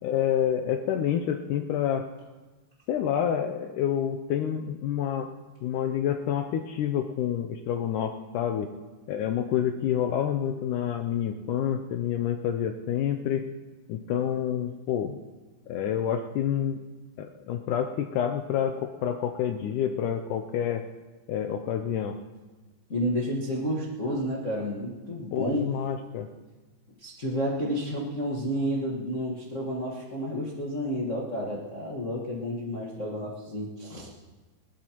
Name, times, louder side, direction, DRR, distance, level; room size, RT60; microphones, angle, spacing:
voice 1, 0.0-2.0 2.9-5.3 5.6-8.7 9.1-13.5 13.9-15.2 15.7-16.8 17.2-20.8 21.3-22.2 25.3-26.3, left 9 dB, 80° left, 6 dB, 1.8 m, -28 dB
voice 2, 22.9-25.7 27.0-34.1, equal, 60° left, -4 dB, 0.7 m, -30 dB
20.5 x 18.5 x 3.0 m, 1.2 s
omnidirectional pair, 4.2 m